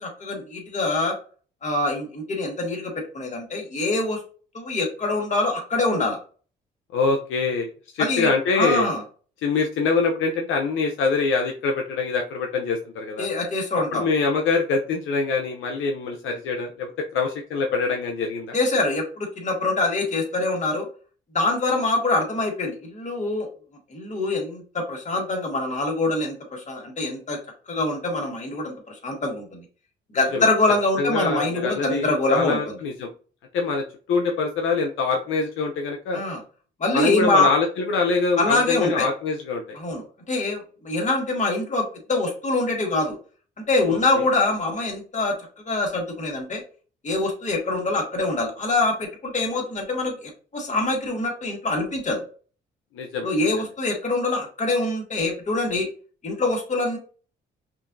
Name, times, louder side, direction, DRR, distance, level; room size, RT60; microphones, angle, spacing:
voice 1, 0.0-1.1 1.6-4.2 4.5-6.2 8.0-9.0 13.2-14.0 18.5-20.9 21.3-23.5 23.9-27.4 27.7-29.6 30.1-32.6 36.1-36.4 36.8-37.5 38.3-39.1 39.7-43.2 43.7-45.4 45.6-46.6 47.0-52.2 53.2-55.9 56.2-57.0, left 2 dB, 35° left, 0 dB, 1.7 m, -24 dB
voice 2, 6.9-8.9 9.4-13.3 13.9-18.6 30.1-30.5 31.0-33.1 33.5-36.2 36.9-39.8 43.9-44.2 52.9-53.5, left 4 dB, 80° left, 2 dB, 0.7 m, -24 dB
5.4 x 2.6 x 2.6 m, 0.39 s
cardioid pair, 90°, 20 cm